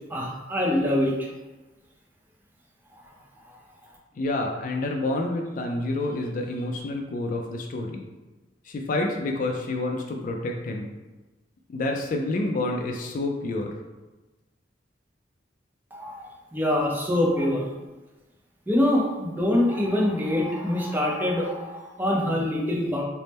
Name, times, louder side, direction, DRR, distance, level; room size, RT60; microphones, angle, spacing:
voice 1, 0.1-1.3 3.0-3.1 3.4-3.6 15.9-17.6 18.7-23.0, left 1 dB, 10° right, -3 dB, 0.6 m, -25 dB
voice 2, 4.2-8.0 8.7-10.9 11.7-13.7, left 2 dB, 45° left, 1 dB, 0.3 m, -28 dB
3.4 x 2.0 x 4.1 m, 1.1 s
head